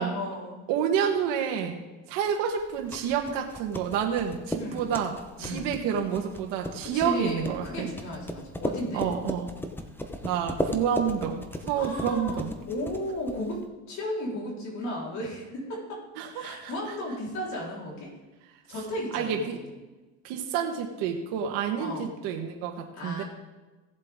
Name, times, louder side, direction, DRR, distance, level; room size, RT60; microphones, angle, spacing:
voice 1, 0.0-0.6 4.6-4.9 5.4-5.8 6.8-9.0 11.7-16.0 16.3-18.1 18.7-19.5 21.8-22.1 22.9-23.2, left 1 dB, 60° left, -3 dB, 4.3 m, -35 dB
voice 2, 0.7-1.8 2.1-7.9 8.9-9.5 10.2-12.5 16.2-16.7 19.1-19.6 20.2-23.2, right 7 dB, 85° right, 2 dB, 1.4 m, -29 dB
sound 1, 2.6-13.6, left 1 dB, 5° left, 1.0 m, -36 dB
17.0 x 7.7 x 3.7 m, 1.2 s
cardioid pair, 120°, 31 cm